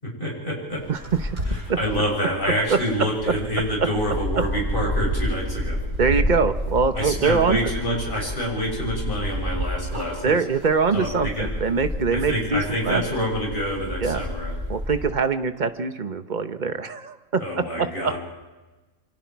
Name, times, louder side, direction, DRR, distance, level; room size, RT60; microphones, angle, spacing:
voice 1, 0.0-0.8 1.5-5.8 6.9-10.4 10.9-11.5 12.1-14.6 17.4-18.2, equal, 40° left, -2 dB, 7.4 m, -27 dB
sound 1, 0.7-15.1, equal, 75° right, 6.9 m, -30 dB
voice 2, 0.9-1.3 2.7-2.8 6.0-7.6 10.2-13.0 14.0-14.2 14.7-18.1, right 5 dB, 40° right, 9 dB, 1.1 m, -23 dB
27.5 x 24.5 x 4.7 m, 1.2 s
omnidirectional pair, 1.4 m